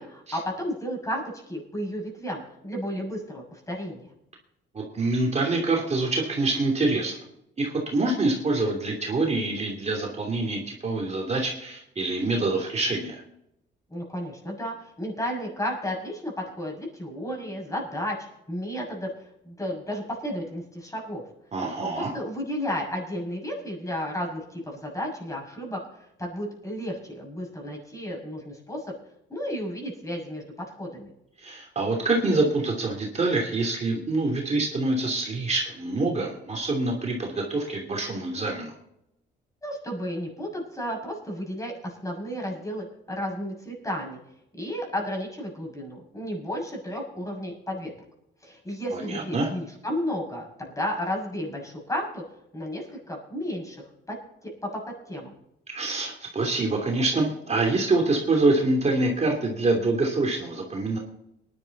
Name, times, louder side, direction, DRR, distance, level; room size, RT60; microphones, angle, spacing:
voice 1, 0.0-4.1 13.9-18.2 18.5-19.1 19.4-21.2 21.8-28.9 29.3-31.1 39.6-44.2 44.6-47.9 48.4-52.2 52.5-54.2 54.4-54.8 55.1-55.3, equal, 15° left, -1 dB, 6.7 m, -33 dB
voice 2, 4.7-7.2 7.6-13.2 21.5-22.1 31.4-38.7 48.9-49.5 55.7-61.0, right 2 dB, 35° right, 0 dB, 2.8 m, -26 dB
19.0 x 11.0 x 4.1 m, 0.80 s
cardioid pair, 90°, 20 cm